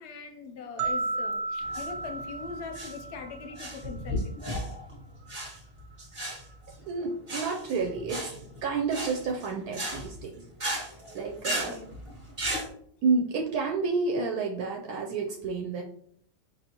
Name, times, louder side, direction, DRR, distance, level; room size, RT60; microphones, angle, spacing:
voice 1, 0.0-4.4 11.5-11.9, left 4 dB, 60° left, 6 dB, 0.7 m, -41 dB
sound 1, 0.8-3.9, right 3 dB, 60° right, 0.7 m, -34 dB
sound 2, 1.6-12.7, equal, 30° right, 0.7 m, -36 dB
voice 2, 6.9-8.3 8.6-10.4 11.1-11.8 13.0-15.8, right 4 dB, 80° right, 0 dB, 1.1 m, -30 dB
4.6 x 2.7 x 2.8 m, 0.66 s
omnidirectional pair, 1.6 m